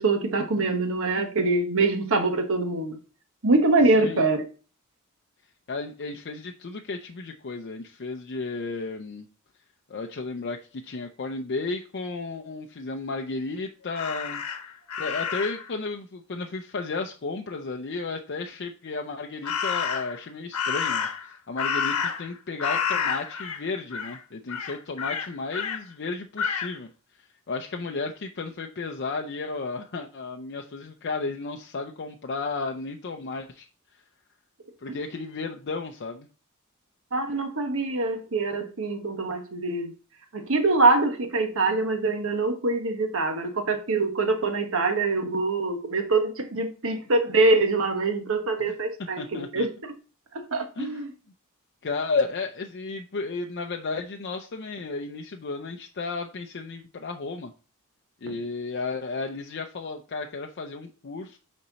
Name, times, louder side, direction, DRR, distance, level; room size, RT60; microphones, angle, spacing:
voice 1, 0.0-3.0 3.4-4.4 34.9-35.0 37.1-39.9 40.3-49.7 50.3-51.1, right 3 dB, 65° right, 1.3 m, -24 dB
voice 2, 5.7-9.3 9.9-14.4 15.0-26.9 27.2-33.7 34.8-36.3 49.2-49.7 50.8-51.0 51.8-57.5 58.2-61.4, left 3 dB, 50° left, 0.5 m, -33 dB
Crow, 13.9-15.7 19.4-20.2 20.5-22.3 22.6-23.6 23.9-24.2 24.5-25.8 26.4-26.7, left 6 dB, 90° left, 1.1 m, -29 dB
8.5 x 4.3 x 4.0 m
head